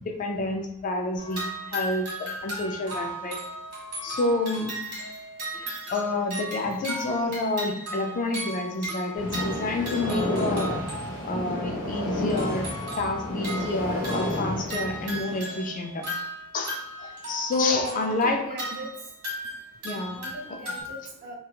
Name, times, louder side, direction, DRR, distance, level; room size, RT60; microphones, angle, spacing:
voice 1, 0.0-3.4 4.0-4.7 5.5-10.7 11.2-12.7 13.0-16.1 16.5-18.4 19.8-20.2, left 2 dB, 35° left, 3 dB, 0.3 m, -29 dB
sound 1, 1.2-11.4 12.3-20.8, right 1 dB, 70° right, 1.5 m, -36 dB
sound 2, 9.2-15.6, left 1 dB, 80° left, 0.9 m, -31 dB
voice 2, 17.7-18.9 20.1-21.3, right 1 dB, 40° right, 0 dB, 0.5 m, -40 dB
2.9 x 2.3 x 2.3 m, 0.87 s
head